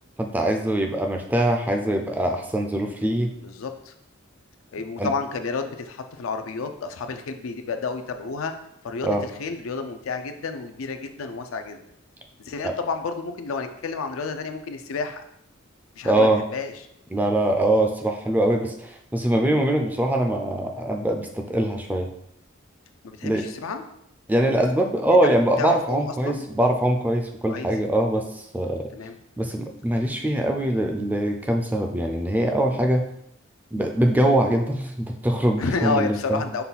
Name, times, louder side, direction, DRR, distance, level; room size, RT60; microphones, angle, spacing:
voice 1, 0.2-3.3 5.0-5.1 9.0-9.2 12.6-12.7 16.0-16.4 17.1-22.1 23.2-23.5 24.3-28.9 29.4-33.0 33.7-36.4, right 1 dB, 10° right, 3 dB, 0.3 m, -23 dB
voice 2, 3.3-3.9 4.7-8.5 8.8-11.8 12.4-15.2 16.0-16.7 23.0-23.8 25.2-25.3 25.6-26.5 27.4-27.7 28.9-29.2 35.6-36.6, left 4 dB, 85° left, 7 dB, 0.4 m, -30 dB
5.4 x 2.3 x 4.0 m, 0.75 s
head